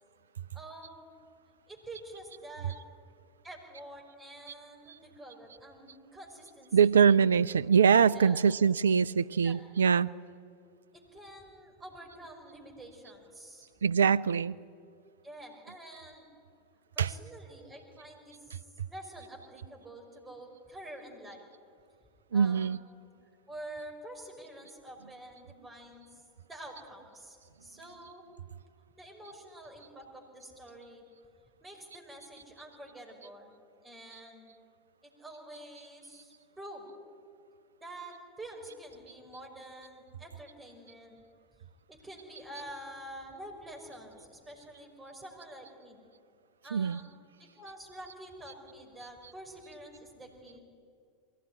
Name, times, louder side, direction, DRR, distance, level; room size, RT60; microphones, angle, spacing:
voice 1, 0.5-1.1 1.7-2.7 3.4-6.7 8.1-8.4 9.4-9.6 10.9-13.7 15.2-16.3 17.0-21.4 22.3-22.7 23.5-26.2 26.5-28.2 28.9-31.0 31.6-33.5 33.8-34.4 35.0-36.9 37.8-41.2 41.6-46.0 46.6-47.1 47.4-50.6, right 1 dB, 15° right, 5.5 m, -48 dB
voice 2, 6.7-10.1 13.8-14.6 17.0-17.1 22.3-22.8 46.7-47.0, right 6 dB, 75° right, 0.5 m, -23 dB
22.5 x 17.0 x 9.9 m
figure-of-eight pair, 80°, 0 cm